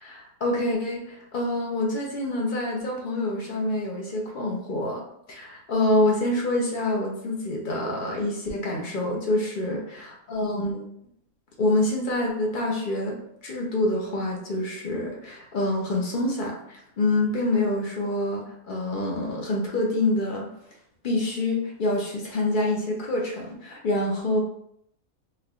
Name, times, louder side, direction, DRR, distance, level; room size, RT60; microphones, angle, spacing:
voice 1, 0.0-10.9 11.6-13.2 13.4-20.5 21.0-24.4, left 1 dB, 45° left, -1 dB, 0.7 m, -26 dB
3.4 x 2.8 x 2.4 m, 0.72 s
omnidirectional pair, 1.5 m